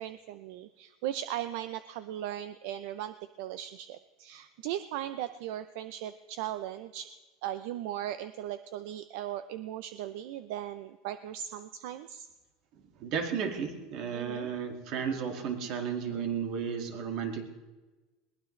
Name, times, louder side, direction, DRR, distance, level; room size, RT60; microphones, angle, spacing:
voice 1, 0.0-7.1 7.4-12.3 14.1-14.5, right 12 dB, 65° right, 12 dB, 0.6 m, -38 dB
voice 2, 13.0-17.5, right 7 dB, 45° right, 5 dB, 2.1 m, -33 dB
21.5 x 19.0 x 3.2 m, 1.2 s
cardioid pair, 165°, 0 cm